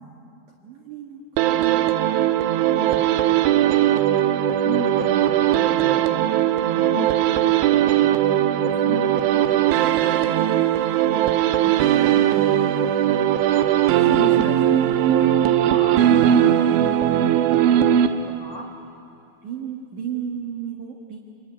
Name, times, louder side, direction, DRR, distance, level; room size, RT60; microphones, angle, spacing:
voice 1, 0.6-1.8 6.8-7.0 10.4-11.3 11.6-12.7 17.5-17.8 19.4-21.2, right 7 dB, 60° right, 2 dB, 2.2 m, -35 dB
sound 1, 1.4-18.6, right 11 dB, 80° right, 3.0 m, -19 dB
voice 2, 2.7-3.1 4.3-6.3 6.7-7.1 7.4-8.3 8.6-10.0 13.5-13.7 14.0-14.8 15.1-16.9 17.9-18.7, left 5 dB, 55° left, 0 dB, 1.7 m, -34 dB
27.5 x 22.0 x 9.4 m, 2.6 s
omnidirectional pair, 5.6 m